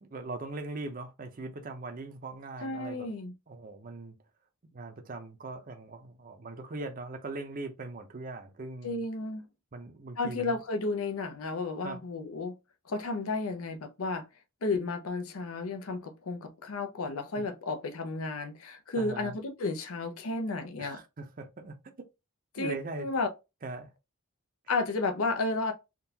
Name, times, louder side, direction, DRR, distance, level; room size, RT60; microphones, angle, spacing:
voice 1, 0.0-3.1 3.5-4.2 4.7-9.0 9.7-10.6 11.8-12.0 17.4-17.5 19.0-19.4 20.8-21.8 22.6-23.1 23.6-23.9, right 2 dB, 40° right, 0.6 m, -40 dB
voice 2, 2.6-3.3 8.8-9.5 10.2-12.5 12.9-14.3 14.6-21.0 22.5-23.3 24.7-25.7, left 3 dB, 75° left, 0.6 m, -32 dB
3.6 x 2.4 x 2.8 m
head